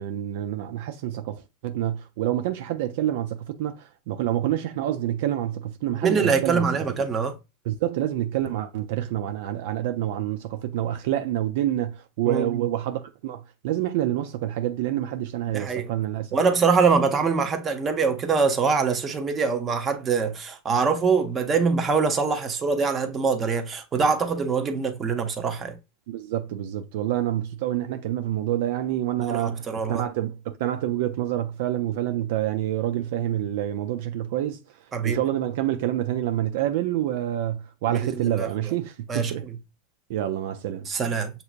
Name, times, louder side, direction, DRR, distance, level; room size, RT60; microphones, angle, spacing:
voice 1, 0.0-6.7 7.7-16.4 26.1-34.6 35.0-39.5 40.1-40.9, right 12 dB, 70° right, 0.4 m, -27 dB
voice 2, 6.0-7.3 12.3-12.6 15.5-15.9 16.3-25.7 29.2-30.1 34.9-35.2 37.9-38.5 39.1-39.3 40.9-41.3, right 5 dB, 25° right, 0.9 m, -24 dB
6.7 x 2.8 x 2.5 m
hypercardioid pair, 110°, 0 cm